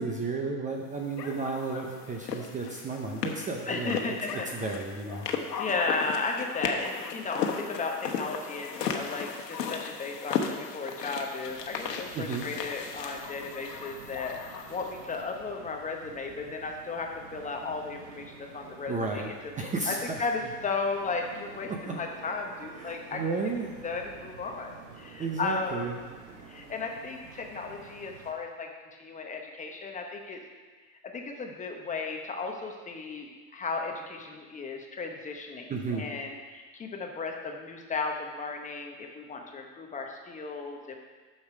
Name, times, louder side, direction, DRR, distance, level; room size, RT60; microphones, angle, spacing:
voice 1, 0.0-5.3 12.1-12.5 18.9-20.2 21.7-22.0 22.8-23.8 25.2-25.9 26.2-26.5 35.7-36.1, right 3 dB, 15° right, 1 dB, 0.7 m, -33 dB
sound 1, 1.2-15.2, left 6 dB, 90° left, 1.2 m, -36 dB
voice 2, 3.7-4.5 5.6-19.3 19.9-23.2 23.8-25.9 26.5-30.4 31.0-41.0, left 4 dB, 15° left, 2 dB, 0.9 m, -35 dB
sound 2, 11.5-28.3, right 5 dB, 65° right, 1.7 m, -50 dB
9.4 x 6.6 x 5.0 m, 1.4 s
hypercardioid pair, 120°, 47 cm